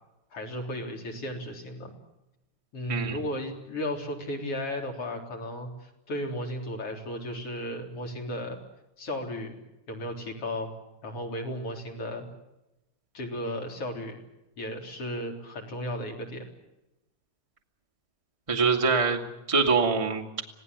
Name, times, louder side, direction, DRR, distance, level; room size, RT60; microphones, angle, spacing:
voice 1, 0.3-1.9 2.7-8.6 9.0-9.6 9.9-10.7 11.0-12.3 13.1-14.2 14.6-16.4, left 1 dB, 45° left, 2 dB, 4.5 m, -34 dB
voice 2, 18.5-20.4, right 4 dB, 10° right, 3 dB, 1.8 m, -24 dB
26.5 x 18.0 x 8.2 m, 0.94 s
omnidirectional pair, 3.6 m